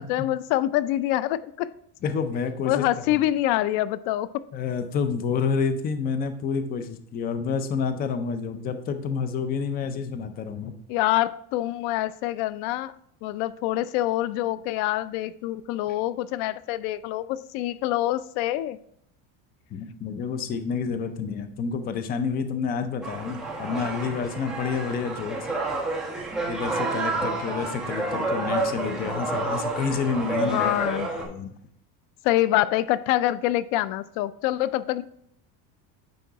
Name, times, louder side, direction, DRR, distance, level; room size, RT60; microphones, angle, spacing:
voice 1, 0.0-1.7 2.6-4.4 10.9-12.9 13.2-18.8 30.4-31.1 32.2-35.0, left 14 dB, 75° left, 16 dB, 0.5 m, -25 dB
voice 2, 2.0-2.8 3.1-3.2 4.5-10.7 19.7-25.5 26.5-30.7 31.2-31.5, left 5 dB, 25° left, 9 dB, 0.4 m, -29 dB
sound 1, 23.0-31.2, right 2 dB, ahead, 1.3 m, -29 dB
9.4 x 3.7 x 4.6 m, 0.71 s
cardioid pair, 160°, 41 cm